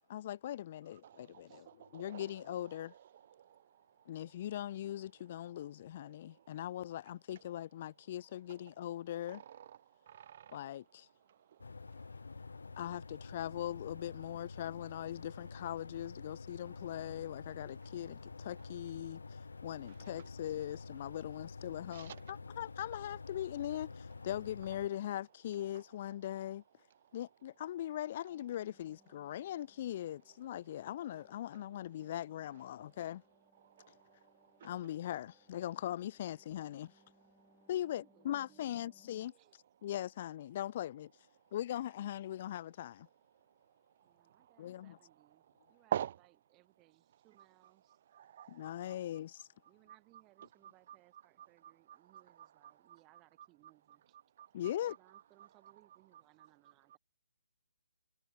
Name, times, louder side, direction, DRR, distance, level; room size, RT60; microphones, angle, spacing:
voice 1, 0.0-2.9 4.1-9.4 10.5-11.1 12.8-26.6 27.1-33.2 33.9-34.0 34.6-37.0 37.7-39.3 39.8-41.1 41.5-43.1 44.6-45.0 48.5-49.5 54.5-54.9, left 12 dB, 35° left, 0.4 m, -40 dB
voice 2, 1.0-2.2 9.3-9.6 10.1-10.6 21.9-22.2 33.8-33.9 34.6-34.7 45.9-46.1 48.1-48.7 54.4-54.5, right 10 dB, 40° right, 0.3 m, -41 dB
sound 1, 11.6-24.9, left 4 dB, 85° left, 2.1 m, -49 dB
sound 2, 28.3-39.3, equal, ahead, 1.8 m, -72 dB
voice 3, 37.8-38.9 39.3-39.6 44.0-48.0 49.7-54.2 54.6-57.0, right 21 dB, 20° right, 4.6 m, -68 dB
hypercardioid pair, 160°, 0 cm